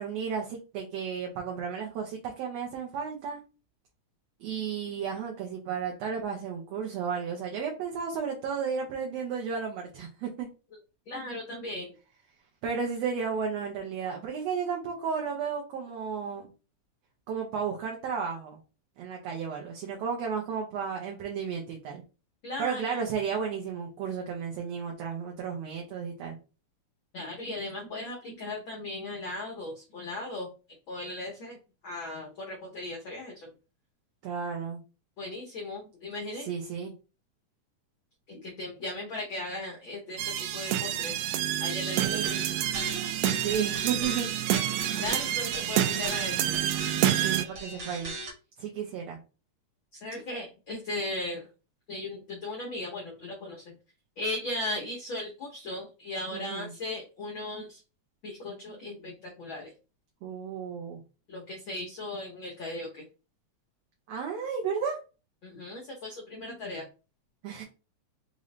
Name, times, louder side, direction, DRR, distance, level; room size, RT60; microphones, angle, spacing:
voice 1, 0.0-3.4 4.4-10.5 12.6-16.5 17.3-18.6 19.0-22.0 22.6-26.4 34.2-34.8 36.4-36.9 42.0-42.4 42.9-44.3 47.2-48.1 48.6-49.2 56.3-56.7 60.2-61.0 64.1-65.0 67.4-67.6, right 6 dB, 70° right, 0 dB, 1.7 m, -33 dB
voice 2, 11.1-11.9 22.4-23.0 27.1-30.5 30.9-31.6 31.8-33.5 35.2-36.5 38.3-41.2 41.6-42.4 45.0-46.6 49.9-51.5 51.9-53.7 54.2-57.8 58.2-59.7 61.3-63.0 65.4-66.9, left 2 dB, 85° left, 0 dB, 1.0 m, -37 dB
sound 1, 40.2-47.4, right 12 dB, 90° right, 1.4 m, -28 dB
sound 2, 42.0-48.3, right 2 dB, 50° right, 1.5 m, -39 dB
5.0 x 2.6 x 3.1 m, 0.33 s
omnidirectional pair, 3.5 m